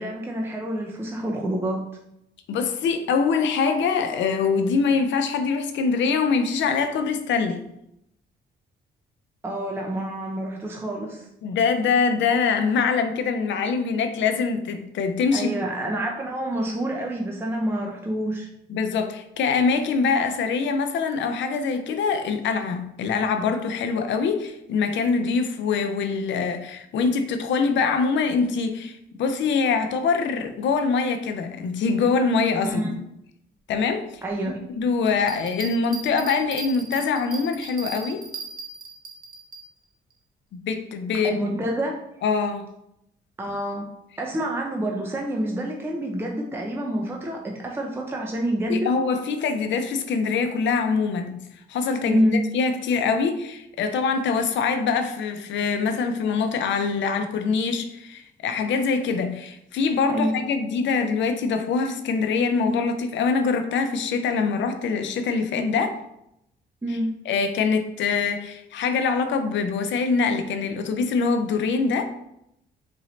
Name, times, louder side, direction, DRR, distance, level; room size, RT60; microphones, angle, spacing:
voice 1, 0.0-1.8 9.4-11.3 15.3-18.5 32.6-33.0 34.2-34.6 41.2-42.0 43.4-43.9 44.2-48.9 52.0-52.5 60.1-60.4 66.8-67.2, right 1 dB, 10° right, 0 dB, 0.5 m, -27 dB
voice 2, 2.5-7.6 11.4-15.5 18.7-33.0 33.7-34.2 34.8-38.3 40.5-41.4 42.2-42.6 48.7-51.4 51.7-66.0 67.3-72.0, left 5 dB, 70° left, 8 dB, 0.5 m, -24 dB
Bell, 35.2-39.6 40.1-40.2, right 4 dB, 45° right, 0.7 m, -37 dB
4.0 x 2.6 x 3.1 m, 0.79 s
cardioid pair, 90°, 20 cm